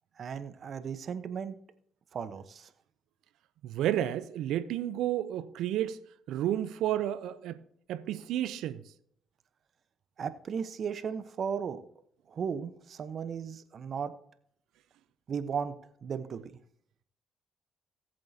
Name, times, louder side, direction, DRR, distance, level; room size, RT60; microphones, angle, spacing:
voice 1, 0.2-1.6 2.1-2.7 10.2-11.8 12.3-14.1 15.3-15.7 16.0-16.5, right 6 dB, 55° right, 1.0 m, -35 dB
voice 2, 3.6-6.0 6.3-7.6 7.9-8.8, right 12 dB, 75° right, 0.7 m, -31 dB
19.0 x 7.7 x 2.8 m
hypercardioid pair, 50°, 0 cm